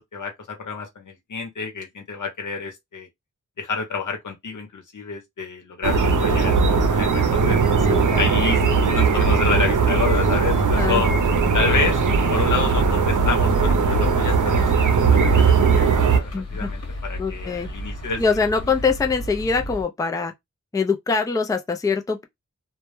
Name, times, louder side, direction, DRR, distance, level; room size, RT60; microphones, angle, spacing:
voice 1, 0.0-3.1 3.6-7.6 8.2-11.1 11.5-12.0 12.3-18.2, left 5 dB, 75° left, 0.8 m, -29 dB
sound 1, 5.8-16.2, right 5 dB, 75° right, 0.6 m, -19 dB
voice 2, 7.9-8.3 10.7-11.0 16.3-16.7 17.2-17.7 18.2-20.3 20.7-22.3, left 4 dB, 10° left, 0.4 m, -23 dB
sound 2, 11.6-19.8, left 1 dB, 50° left, 1.0 m, -35 dB
2.2 x 2.0 x 3.0 m
cardioid pair, 55°, 31 cm